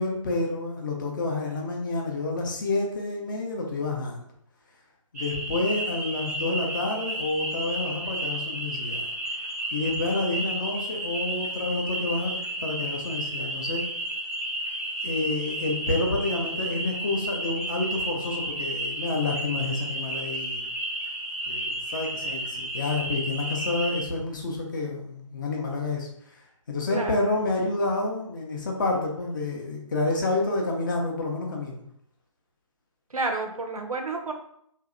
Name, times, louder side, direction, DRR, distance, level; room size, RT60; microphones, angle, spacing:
voice 1, 0.0-4.2 5.1-9.1 9.7-13.8 15.0-20.7 21.5-26.1 26.7-31.8, left 2 dB, 35° left, 0 dB, 0.5 m, -29 dB
sound 1, 5.2-24.1, right 1 dB, 25° right, 0.4 m, -32 dB
voice 2, 26.9-27.3 33.1-34.3, right 3 dB, 85° right, 4 dB, 0.5 m, -30 dB
2.6 x 2.0 x 2.4 m, 0.70 s
figure-of-eight pair, 140°, 18 cm